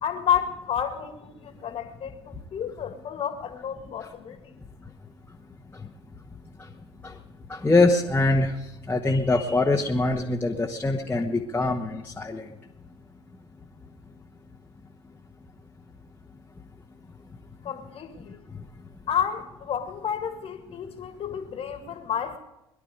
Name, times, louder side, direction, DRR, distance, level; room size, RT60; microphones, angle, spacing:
voice 1, 0.0-4.5 17.6-18.4 19.1-22.4, left 8 dB, 45° left, 1.9 m, -30 dB
voice 2, 7.5-8.5 8.9-12.4, left 2 dB, 15° left, 1.3 m, -23 dB
22.0 x 11.0 x 5.2 m
hypercardioid pair, 65°, 14 cm